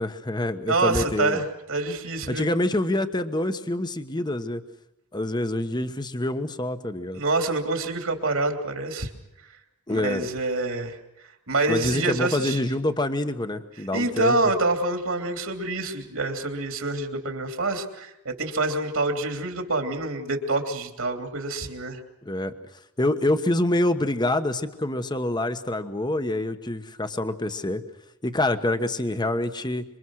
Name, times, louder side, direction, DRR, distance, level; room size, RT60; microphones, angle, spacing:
voice 1, 0.0-1.4 2.3-4.6 5.1-7.2 9.9-10.3 11.7-14.4 22.2-22.5 23.0-27.8 28.2-29.8, left 1 dB, 20° left, 9 dB, 1.1 m, -26 dB
voice 2, 0.7-2.5 7.1-9.1 9.9-11.0 11.5-12.6 13.9-22.0, right 2 dB, 70° right, 4 dB, 3.2 m, -26 dB
26.5 x 24.0 x 6.4 m, 0.87 s
head